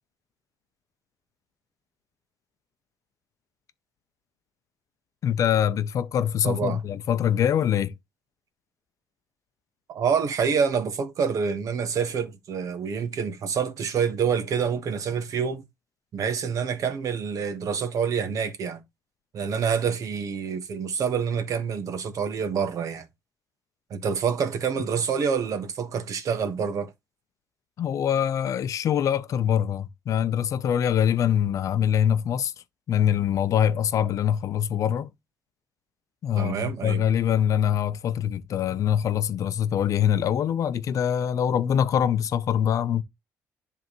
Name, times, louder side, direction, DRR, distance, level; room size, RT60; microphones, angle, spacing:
voice 1, 5.2-7.9 27.8-32.5 32.9-35.1 36.2-43.0, left 9 dB, 55° left, 0.6 m, -24 dB
voice 2, 6.4-6.8 9.9-15.6 16.1-18.8 19.3-23.1 23.9-26.9 36.3-37.0, right 6 dB, 55° right, 1.4 m, -27 dB
10.5 x 3.5 x 3.1 m
cardioid pair, 120°, 7 cm